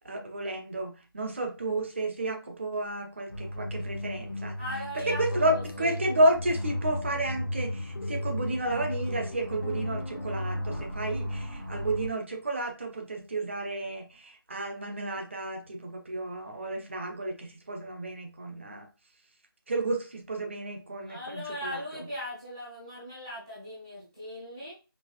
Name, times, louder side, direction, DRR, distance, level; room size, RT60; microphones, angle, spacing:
voice 1, 0.0-4.6 4.9-18.9 19.7-21.8, right 1 dB, 30° right, 3 dB, 0.8 m, -31 dB
sound 1, 3.3-12.1, equal, 55° right, 2.2 m, -35 dB
voice 2, 4.6-6.1 21.1-24.7, left 1 dB, 10° right, -7 dB, 0.4 m, -39 dB
sound 2, 5.2-10.8, left 2 dB, 55° left, 0.4 m, -40 dB
4.6 x 3.0 x 2.4 m, 0.31 s
figure-of-eight pair, 165°, 12 cm